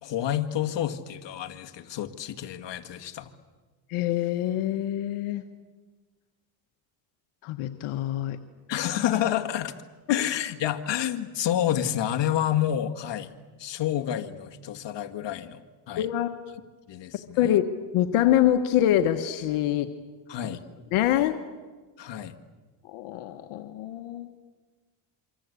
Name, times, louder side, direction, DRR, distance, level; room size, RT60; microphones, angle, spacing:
voice 1, 0.0-3.3 8.7-9.7 10.1-13.3 13.6-15.6 15.9-16.1 16.9-17.6 20.3-20.6 22.0-22.3, left 11 dB, 60° left, 6 dB, 2.1 m, -29 dB
voice 2, 3.9-5.4 7.4-8.4 10.1-10.2 16.0-16.3 17.4-17.7 17.9-19.9 20.9-21.4 22.8-24.3, left 12 dB, 80° left, 7 dB, 1.5 m, -25 dB
27.0 x 24.5 x 8.4 m, 1.3 s
cardioid pair, 95°, 49 cm